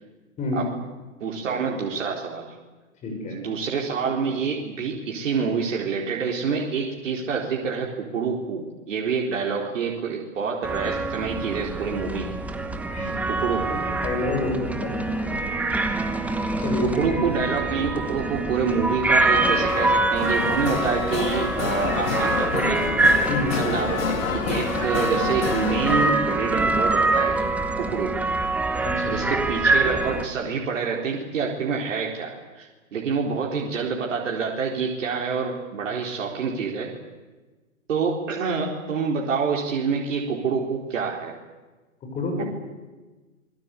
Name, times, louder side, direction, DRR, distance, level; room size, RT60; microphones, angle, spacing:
voice 1, 1.2-2.5 3.3-12.5 13.3-13.8 16.8-23.0 23.5-28.2 28.7-36.9 37.9-41.3 42.4-42.5, right 5 dB, 60° right, -1 dB, 4.3 m, -27 dB
voice 2, 3.0-3.4 12.9-13.2 13.5-15.4 16.6-17.2 23.3-23.6 28.8-29.2 42.0-42.4, left 2 dB, 15° left, 2 dB, 6.2 m, -29 dB
sound 1, 10.6-30.3, right 2 dB, 5° right, 1.1 m, -25 dB
sound 2, 19.3-26.1, left 6 dB, 70° left, 2.5 m, -28 dB
26.0 x 21.0 x 8.5 m, 1.2 s
hypercardioid pair, 145°, 42 cm